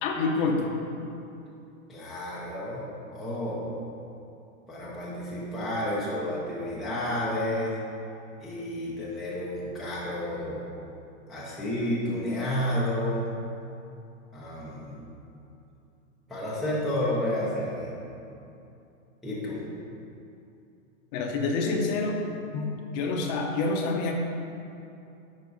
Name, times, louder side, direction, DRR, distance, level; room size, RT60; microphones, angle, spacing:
voice 1, 0.0-0.7 21.1-22.2 22.5-22.7 22.9-24.1, left 3 dB, 30° left, 2 dB, 0.7 m, -27 dB
voice 2, 1.9-2.9 3.1-3.7 4.7-7.8 8.4-10.6 11.3-13.3 14.3-15.0 16.3-17.9 19.2-19.6, left 1 dB, ahead, -8 dB, 0.5 m, -31 dB
10.5 x 4.7 x 4.0 m, 2.7 s
hypercardioid pair, 150°, 41 cm